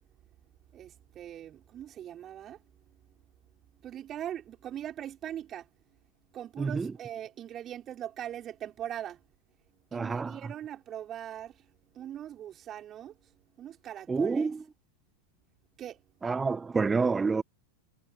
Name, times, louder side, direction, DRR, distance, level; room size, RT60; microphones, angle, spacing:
voice 1, 0.7-2.6 3.8-5.7 6.3-9.2 9.9-11.6 11.9-13.3 13.6-14.5 15.8-16.0, right 11 dB, 30° right, 5.2 m, -41 dB
voice 2, 6.6-6.9 9.9-10.4 14.1-14.6 16.2-17.4, right 4 dB, 15° right, 0.9 m, -28 dB
figure-of-eight pair, 90°, 0 cm